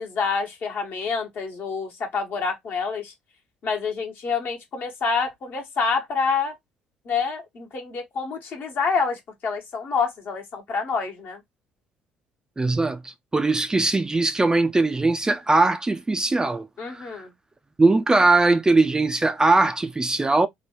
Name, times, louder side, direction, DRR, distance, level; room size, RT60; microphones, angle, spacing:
voice 1, 0.0-3.1 3.6-6.5 7.0-11.4 16.8-17.3, left 5 dB, 50° left, 1.1 m, -27 dB
voice 2, 12.6-17.2 17.8-20.5, right 2 dB, 15° right, 0.3 m, -20 dB
2.9 x 2.2 x 2.9 m
hypercardioid pair, 55°, 4 cm